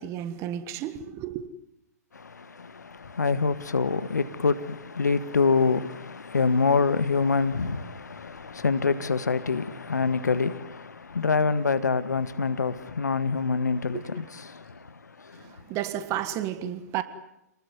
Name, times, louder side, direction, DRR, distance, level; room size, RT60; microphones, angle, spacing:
voice 1, 0.0-1.5 13.9-14.0 15.4-17.0, right 11 dB, 30° right, 1.7 m, -32 dB
voice 2, 2.1-15.6, left 4 dB, 80° left, 1.7 m, -26 dB
28.5 x 20.0 x 9.6 m
figure-of-eight pair, 115°, 9 cm